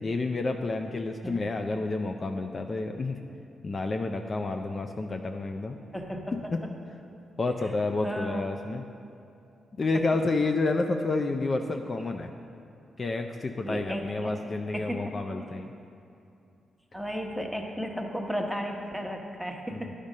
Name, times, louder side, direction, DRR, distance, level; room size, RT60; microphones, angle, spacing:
voice 1, 0.0-3.2 3.6-5.8 6.3-6.6 7.4-8.8 9.8-12.3 13.0-15.7 19.7-19.9, left 3 dB, 45° left, 4 dB, 0.4 m, -30 dB
voice 2, 5.9-6.5 8.0-8.5 13.6-14.3 14.7-15.1 16.9-19.9, equal, ahead, 2 dB, 1.0 m, -34 dB
10.5 x 5.0 x 5.4 m, 2.6 s
cardioid pair, 60°, 0 cm